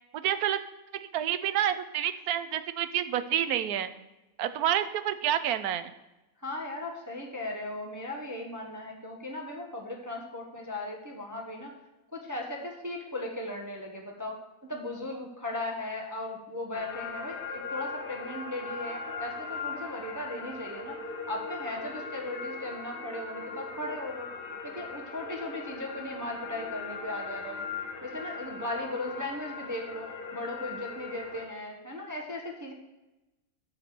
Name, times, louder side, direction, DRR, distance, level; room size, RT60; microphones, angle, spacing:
voice 1, 0.1-0.6 1.1-3.9 4.4-5.9, right 10 dB, 85° right, 11 dB, 1.1 m, -28 dB
voice 2, 6.4-11.7 12.1-14.4 14.7-21.0 21.3-24.3 24.6-27.6 28.0-32.7, left 1 dB, 15° right, 0 dB, 1.0 m, -37 dB
sound 1, 16.7-31.5, left 4 dB, 45° left, 1.0 m, -39 dB
12.0 x 4.3 x 6.7 m, 1.0 s
omnidirectional pair, 1.6 m